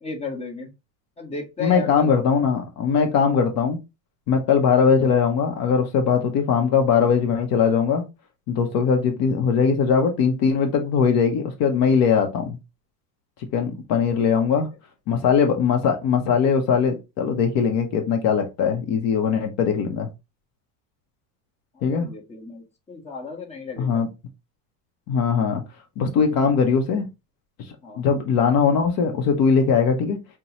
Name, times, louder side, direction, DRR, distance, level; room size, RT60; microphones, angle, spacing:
voice 1, 0.0-0.7 1.2-2.1 14.1-14.6 21.7-24.0 27.8-28.1, left 4 dB, 15° left, 1.1 m, -35 dB
voice 2, 1.6-3.8 4.3-8.0 8.5-12.6 13.5-14.7 15.1-20.1 21.8-22.1 23.8-24.1 25.1-25.6 26.0-27.1 28.0-30.2, left 6 dB, 50° left, 0.8 m, -20 dB
5.3 x 2.3 x 2.9 m
supercardioid pair, 135°, 46 cm